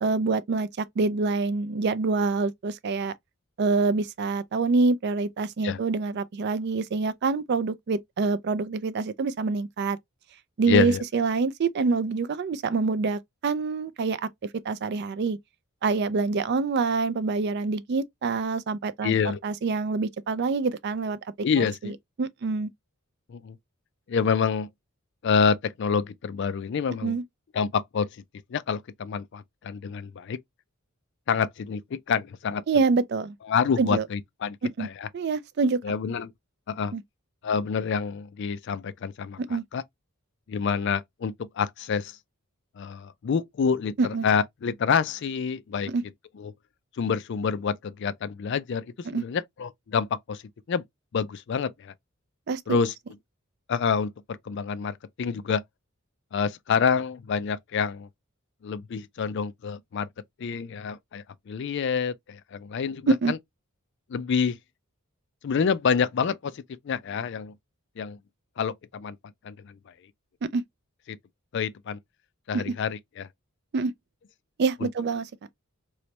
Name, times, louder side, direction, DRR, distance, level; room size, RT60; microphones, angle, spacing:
voice 1, 0.0-3.1 3.6-10.0 10.6-14.2 14.6-15.4 15.8-19.1 19.4-21.2 21.6-21.9 22.2-22.7 27.0-27.2 32.7-33.4 33.8-34.0 34.8-34.9 35.1-35.8 36.9-37.0 39.4-39.6 44.0-44.3 45.9-46.0 49.1-49.2 52.5-52.6 63.1-63.3 70.5-70.6 72.5-72.7 73.7-73.9 74.6-75.3, right 4 dB, 50° right, 0.4 m, -26 dB
voice 2, 10.7-11.0 19.0-19.4 21.4-22.0 23.3-23.6 24.1-24.7 25.2-27.2 27.5-28.1 28.5-30.4 31.3-32.6 33.5-35.1 35.8-36.3 36.7-36.9 37.4-39.8 40.5-42.2 42.8-45.9 46.4-46.5 47.0-50.4 50.7-50.8 51.1-51.9 52.7-52.9 53.7-55.6 56.3-58.1 58.6-60.1 60.4-63.4 64.1-64.6 65.4-67.5 68.0-68.2 68.6-69.2 69.4-69.7 71.1-71.2 71.5-72.0 72.5-73.3 74.8-74.9, left 6 dB, 55° left, 0.4 m, -27 dB
3.2 x 3.0 x 2.9 m
head